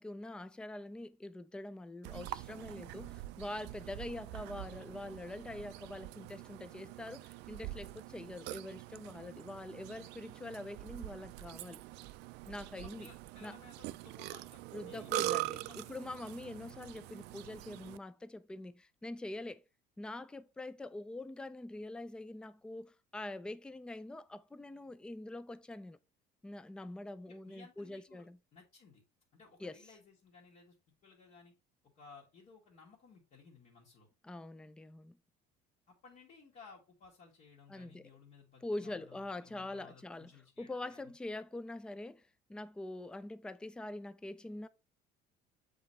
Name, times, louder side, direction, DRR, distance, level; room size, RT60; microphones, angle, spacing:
voice 1, 0.0-11.8 12.5-13.1 13.4-13.6 14.7-19.6 20.0-26.0 26.4-28.4 29.6-29.8 34.2-35.2 37.7-38.1 38.6-40.3 40.6-42.2 42.5-44.7, left 2 dB, 5° left, 0.3 m, -44 dB
Burping eructation, 2.0-18.0, right 18 dB, 75° right, 0.4 m, -44 dB
voice 2, 12.7-15.9 27.3-28.3 28.5-29.0 29.3-30.8 31.0-31.5 32.0-34.1 35.9-41.1, left 4 dB, 50° left, 1.7 m, -58 dB
7.6 x 4.2 x 3.1 m
cardioid pair, 140°, 18 cm